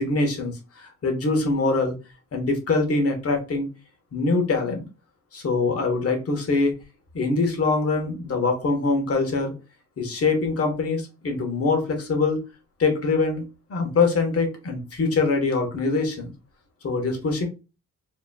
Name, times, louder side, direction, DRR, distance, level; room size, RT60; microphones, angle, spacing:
voice 1, 0.0-1.9 2.3-3.7 4.1-4.8 5.3-6.7 7.1-9.5 10.0-12.4 12.8-13.4 13.7-16.3 16.8-17.5, left 3 dB, 50° left, 4 dB, 1.3 m, -23 dB
4.9 x 3.0 x 2.3 m, 0.30 s
wide cardioid pair, 130°, 29 cm